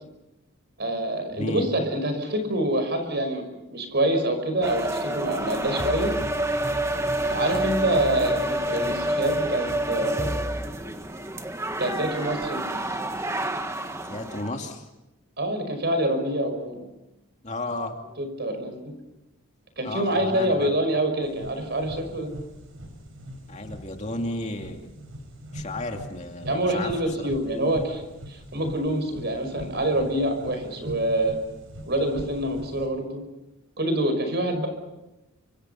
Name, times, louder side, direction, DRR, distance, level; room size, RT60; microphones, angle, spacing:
voice 1, 0.8-6.2 7.3-10.4 11.8-12.7 15.4-16.9 18.2-18.8 19.8-22.3 26.4-31.4 31.9-33.2 33.8-34.7, right 1 dB, 50° right, 7 dB, 5.6 m, -26 dB
voice 2, 1.3-1.7 14.1-14.9 17.4-17.9 19.8-20.7 23.5-24.8 25.5-26.9 27.2-27.3, left 2 dB, 35° left, 3 dB, 2.6 m, -33 dB
sound 1, 4.6-14.5, right 1 dB, 15° right, 1.4 m, -28 dB
sound 2, 21.2-32.9, equal, 70° right, 5.7 m, -41 dB
29.0 x 26.0 x 5.8 m, 0.96 s
head